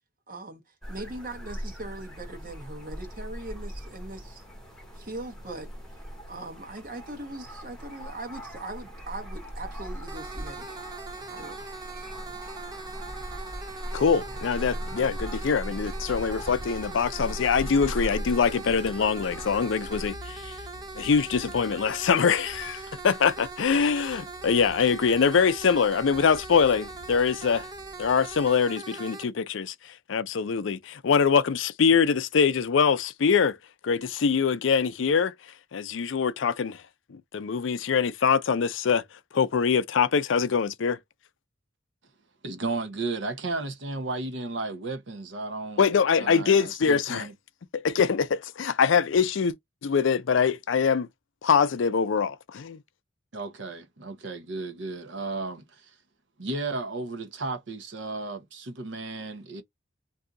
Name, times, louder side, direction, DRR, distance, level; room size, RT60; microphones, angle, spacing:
voice 1, 0.3-0.6 0.9-4.4 5.0-5.7 6.3-10.8 11.3-11.6, right 2 dB, 45° right, 1.0 m, -40 dB
sound 1, 0.8-20.1, equal, 5° left, 0.8 m, -39 dB
sound 2, 10.1-29.2, right 3 dB, 20° right, 0.5 m, -41 dB
sound 3, 13.2-28.5, left 1 dB, 55° left, 0.9 m, -49 dB
voice 2, 13.9-20.6 21.0-27.7 28.0-33.6 33.8-35.3 35.7-36.8 37.1-39.0 39.3-41.0 45.8-47.3 47.7-49.5 49.8-51.1 51.4-52.8, left 6 dB, 70° left, 0.4 m, -24 dB
voice 3, 42.4-45.9 46.1-47.3 53.3-56.0 56.4-59.6, right 3 dB, 65° right, 0.7 m, -34 dB
2.7 x 2.3 x 3.7 m
head